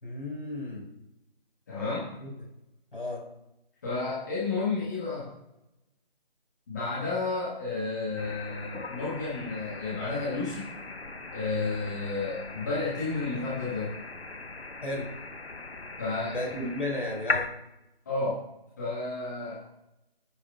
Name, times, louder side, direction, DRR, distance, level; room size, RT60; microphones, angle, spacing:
voice 1, 0.0-0.9 2.2-2.3 2.9-3.2 14.8-15.1 16.3-17.5, left 1 dB, 65° left, -1 dB, 4.9 m, -34 dB
voice 2, 1.7-2.1 3.8-5.3 6.7-10.7 11.3-13.9 16.0-16.3 16.6-16.8 18.0-18.4 18.8-19.6, left 3 dB, 20° left, -8 dB, 1.6 m, -31 dB
sound 1, 8.2-17.5, left 3 dB, 85° left, 1.1 m, -38 dB
21.0 x 9.8 x 2.3 m, 0.88 s
figure-of-eight pair, 160°, 30 cm